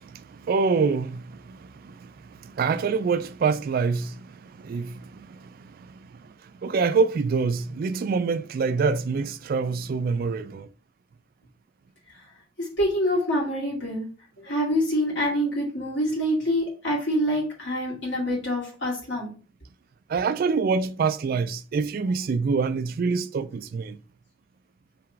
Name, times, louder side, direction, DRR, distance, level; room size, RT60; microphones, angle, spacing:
voice 1, 0.0-6.2 6.6-10.7 20.1-24.0, right 5 dB, 50° right, 0.3 m, -26 dB
voice 2, 12.6-14.1 14.4-19.3, equal, 70° left, 2.2 m, -26 dB
3.5 x 2.9 x 4.6 m
head